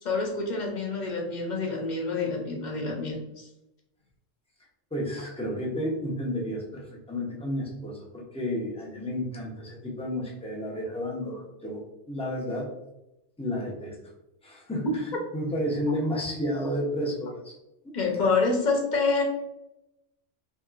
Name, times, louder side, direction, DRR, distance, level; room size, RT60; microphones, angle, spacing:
voice 1, 0.0-3.5 17.9-19.2, left 4 dB, 45° left, -1 dB, 0.7 m, -27 dB
voice 2, 4.9-12.7 13.4-14.0 14.4-17.6 17.8-17.9, equal, 10° left, -3 dB, 0.4 m, -32 dB
3.0 x 2.8 x 2.4 m, 0.88 s
omnidirectional pair, 1.3 m